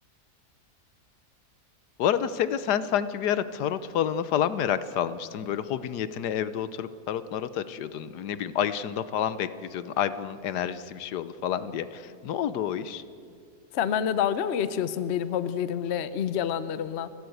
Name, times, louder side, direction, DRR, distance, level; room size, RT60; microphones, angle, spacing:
voice 1, 2.0-13.0, left 9 dB, 85° left, 14 dB, 1.4 m, -29 dB
voice 2, 13.7-17.1, left 9 dB, 50° left, 14 dB, 0.9 m, -28 dB
29.5 x 12.0 x 8.0 m, 2.3 s
omnidirectional pair, 1.7 m